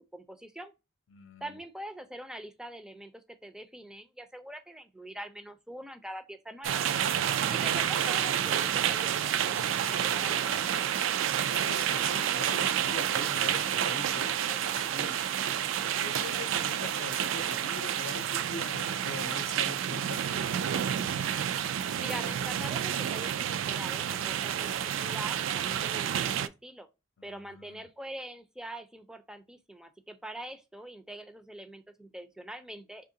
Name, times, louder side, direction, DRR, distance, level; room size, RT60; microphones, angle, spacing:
voice 1, 0.1-0.7 1.4-6.8 7.5-10.9 22.0-26.9 27.2-33.1, right 1 dB, 5° right, 0.4 m, -44 dB
voice 2, 1.1-1.6 11.2-15.2 15.8-20.6 27.2-27.9, left 4 dB, 85° left, 0.6 m, -44 dB
sound 1, 6.6-26.5, right 9 dB, 75° right, 0.3 m, -29 dB
3.7 x 2.8 x 2.6 m
head